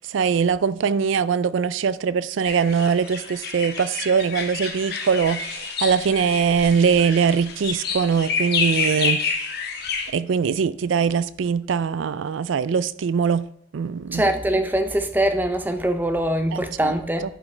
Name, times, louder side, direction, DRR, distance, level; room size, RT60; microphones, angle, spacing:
voice 1, 0.1-9.2 10.1-13.5 13.7-14.3 16.5-17.0, right 6 dB, 80° right, 0.4 m, -22 dB
sound 1, 2.4-10.1, left 5 dB, 55° left, 1.0 m, -28 dB
voice 2, 14.1-17.2, right 1 dB, 10° right, 0.5 m, -23 dB
10.5 x 5.0 x 3.2 m
head